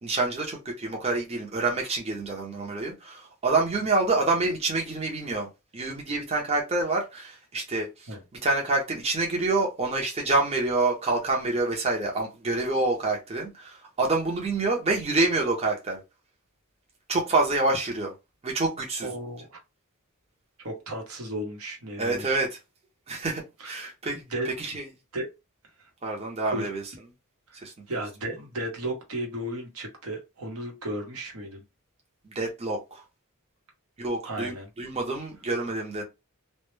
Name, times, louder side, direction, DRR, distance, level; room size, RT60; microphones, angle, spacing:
voice 1, 0.0-5.5 5.7-8.1 8.4-16.0 17.1-18.1 18.4-19.1 22.0-22.5 23.1-24.8 26.0-26.8 27.6-27.7 32.3-33.0 34.0-36.0, right 3 dB, 30° right, 0.6 m, -27 dB
voice 2, 19.0-19.6 20.6-22.4 23.6-24.5 25.1-25.3 25.8-25.9 26.5-26.7 27.5-27.6 27.9-31.6 34.2-34.7, right 1 dB, 80° right, 0.9 m, -34 dB
2.1 x 2.0 x 3.0 m
head